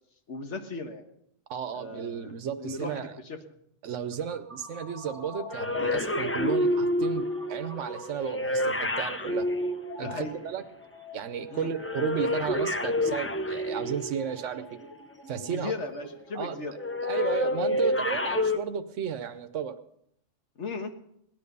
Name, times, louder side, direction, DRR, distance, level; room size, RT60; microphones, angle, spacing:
voice 1, 0.3-1.1 1.7-2.3 2.6-3.4 10.0-10.4 11.5-11.7 15.4-16.8 20.5-20.9, left 3 dB, 70° left, 5 dB, 1.7 m, -36 dB
voice 2, 1.5-3.2 3.8-9.5 10.0-10.6 11.1-14.6 15.3-15.7 16.3-16.6 17.0-19.8, right 8 dB, 80° right, 9 dB, 1.2 m, -33 dB
sound 1, 3.9-18.4, left 1 dB, 5° left, 3.5 m, -46 dB
sound 2, 5.5-10.5 11.8-14.3 16.8-18.6, left 1 dB, 20° left, 0.3 m, -28 dB
18.0 x 10.5 x 5.4 m, 0.74 s
omnidirectional pair, 1.2 m